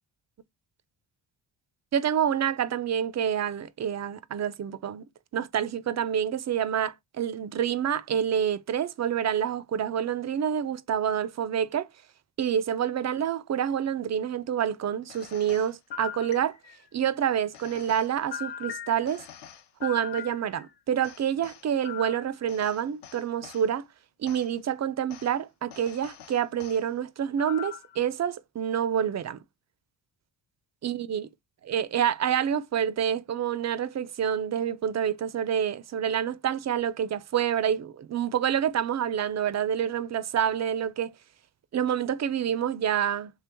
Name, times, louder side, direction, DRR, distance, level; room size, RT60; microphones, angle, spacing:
voice 1, 1.9-5.0 5.3-11.9 12.4-16.6 16.9-19.3 19.8-23.9 24.2-29.4 30.8-31.3 31.6-41.1 41.7-43.3, right 9 dB, 35° right, 0.4 m, -27 dB
sound 1, 15.1-16.9 17.5-20.7 21.0-23.6 24.3-24.5 25.1-25.3 25.7-26.8 27.4-28.0, left 9 dB, 55° left, 0.6 m, -41 dB
3.3 x 3.0 x 3.3 m
cardioid pair, 65°, 50 cm